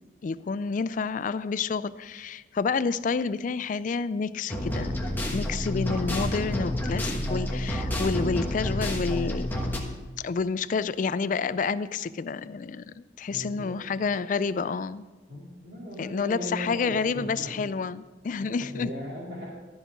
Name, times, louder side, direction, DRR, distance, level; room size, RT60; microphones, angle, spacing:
voice 1, 0.2-4.9 5.3-9.7 10.2-15.1 16.0-18.9, left 5 dB, 45° left, 15 dB, 0.3 m, -29 dB
sound 1, 4.5-9.8, left 1 dB, 10° left, 1.2 m, -29 dB
voice 2, 13.3-13.8 15.3-17.7 18.4-19.5, equal, 65° right, -7 dB, 2.5 m, -38 dB
13.0 x 5.4 x 7.1 m, 1.2 s
head